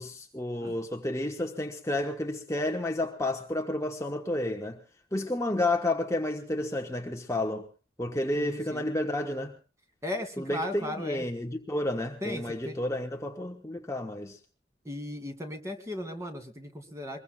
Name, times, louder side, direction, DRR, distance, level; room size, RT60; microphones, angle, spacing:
voice 1, 0.0-4.8 5.1-7.7 8.0-9.5 10.4-14.4, left 1 dB, 15° left, 1.1 m, -31 dB
voice 2, 8.3-8.9 10.0-11.3 12.2-12.8 14.8-17.2, left 1 dB, 15° right, 2.5 m, -37 dB
24.0 x 21.5 x 2.3 m
head